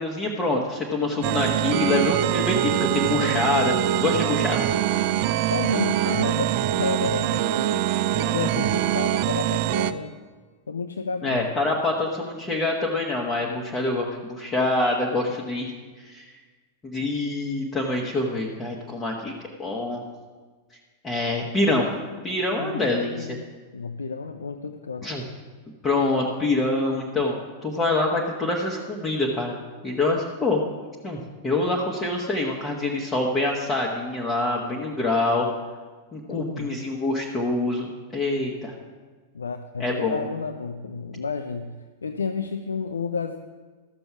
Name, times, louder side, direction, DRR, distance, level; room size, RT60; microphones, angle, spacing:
voice 1, 0.0-4.7 8.4-8.5 11.2-15.7 16.0-16.3 16.8-20.0 21.0-21.9 22.2-23.4 25.0-25.2 25.8-29.6 29.8-30.6 31.0-35.4 36.1-38.7 39.8-40.2, left 2 dB, 20° left, -2 dB, 1.3 m, -25 dB
sound 1, 1.2-9.9, right 12 dB, 45° right, 0.4 m, -24 dB
voice 2, 5.5-7.8 8.1-10.1 10.7-11.5 22.6-23.5 23.7-25.1 36.3-36.9 39.3-43.4, left 5 dB, 75° left, 7 dB, 0.5 m, -31 dB
13.5 x 6.8 x 5.9 m, 1.4 s
figure-of-eight pair, 90°, 0 cm